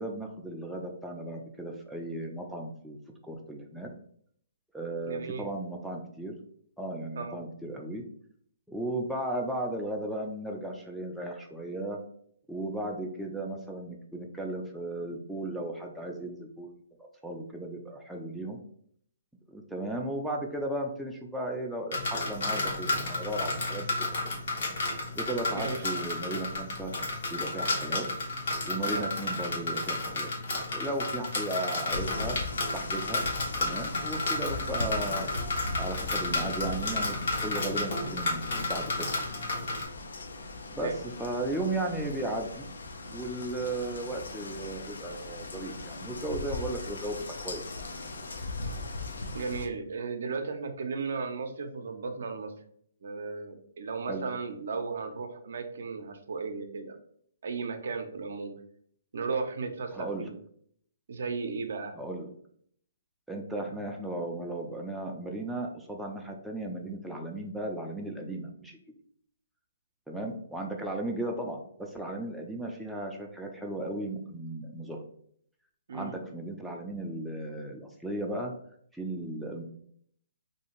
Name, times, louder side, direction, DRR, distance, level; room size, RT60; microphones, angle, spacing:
voice 1, 0.0-3.0 3.2-3.9 4.7-6.3 6.8-8.0 8.7-12.0 12.5-18.6 19.5-23.9 25.2-26.9 27.3-28.1 28.6-30.3 30.5-32.4 32.7-33.2 33.6-35.3 35.8-37.2 37.4-39.2 40.7-42.7 43.1-47.6 54.1-54.2 59.9-60.3 62.0-62.3 63.3-68.8 70.1-75.0 75.9-78.5 78.9-79.6, right 1 dB, ahead, -1 dB, 0.3 m, -35 dB
voice 2, 5.1-5.5 7.2-7.4 25.5-25.9 28.9-29.1 40.8-41.0 49.3-52.5 53.0-57.0 57.4-58.5 59.1-60.3 61.1-62.0 75.9-76.1, right 4 dB, 70° right, 6 dB, 0.5 m, -35 dB
sound 1, 21.9-39.8, left 2 dB, 70° left, 0.9 m, -32 dB
sound 2, 31.9-49.7, left 2 dB, 85° left, 0.4 m, -39 dB
2.6 x 2.4 x 2.9 m, 0.65 s
hypercardioid pair, 145°, 0 cm